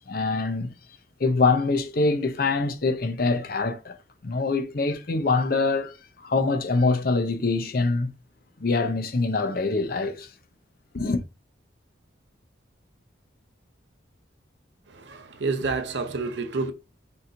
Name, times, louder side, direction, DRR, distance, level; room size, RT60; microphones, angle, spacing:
voice 1, 0.1-0.7 1.2-4.0 4.2-5.9 6.2-8.1 8.6-10.3 10.9-11.2, left 3 dB, 50° left, 0.6 m, -24 dB
voice 2, 14.9-16.7, right 3 dB, 65° right, 0.7 m, -29 dB
4.3 x 3.9 x 2.5 m
head